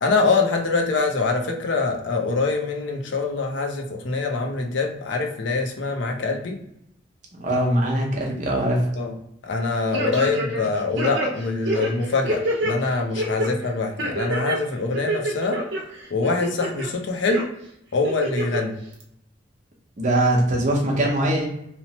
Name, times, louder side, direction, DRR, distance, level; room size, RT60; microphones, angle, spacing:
voice 1, 0.0-6.6 9.0-9.1 9.4-15.6 16.1-17.5 17.9-18.8, left 3 dB, 80° left, 4 dB, 0.5 m, -24 dB
voice 2, 7.4-8.9 20.0-21.5, right 1 dB, 45° right, -1 dB, 0.7 m, -21 dB
sound 1, 9.9-10.7 11.0-12.7 13.2-13.5 14.0-14.6 14.9-15.8 16.2-16.9 17.3-17.4 18.0-18.6 19.0-19.1, right 1 dB, 80° right, 0.7 m, -26 dB
2.9 x 2.0 x 2.8 m, 0.77 s
head